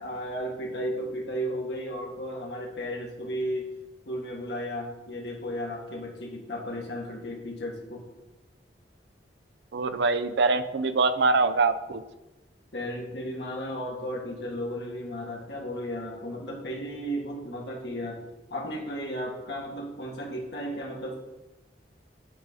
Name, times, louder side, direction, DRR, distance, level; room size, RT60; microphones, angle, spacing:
voice 1, 0.0-3.7 4.0-8.0 12.7-18.2 18.5-21.2, equal, 70° left, -1 dB, 1.5 m, -34 dB
voice 2, 9.7-12.0, right 3 dB, 70° right, 11 dB, 0.5 m, -24 dB
8.3 x 4.1 x 4.8 m, 1.0 s
head